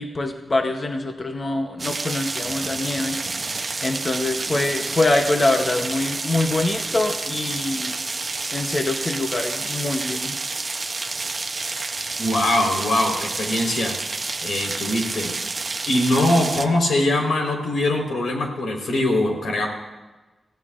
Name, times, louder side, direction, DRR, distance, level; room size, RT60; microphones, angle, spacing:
voice 1, 0.0-3.6 3.8-7.9 8.5-10.4, left 2 dB, 30° left, 4 dB, 0.8 m, -24 dB
sound 1, 1.8-16.7, right 3 dB, 30° right, 0.7 m, -29 dB
voice 2, 12.2-15.3 15.9-19.7, left 1 dB, 90° left, 1 dB, 3.9 m, -22 dB
29.0 x 16.0 x 2.5 m, 1.2 s
wide cardioid pair, 165°, 0 cm